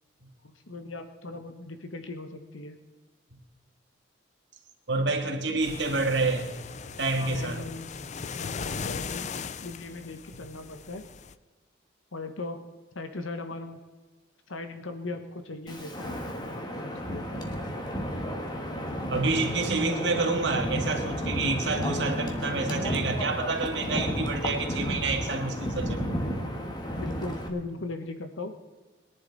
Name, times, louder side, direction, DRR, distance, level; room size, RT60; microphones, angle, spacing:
voice 1, 0.4-2.8 7.2-7.9 8.3-11.1 12.1-12.6 12.9-13.8 14.5-17.5 27.0-28.6, left 2 dB, 80° left, 8 dB, 1.2 m, -39 dB
voice 2, 4.9-6.5 7.0-7.6 19.1-26.0, right 3 dB, 60° right, 3 dB, 2.0 m, -28 dB
sound 1, 5.6-11.3, left 5 dB, 35° left, 0.4 m, -38 dB
Wind, 15.7-27.5, equal, 20° left, 1.5 m, -32 dB
21.5 x 11.0 x 4.1 m, 1.4 s
head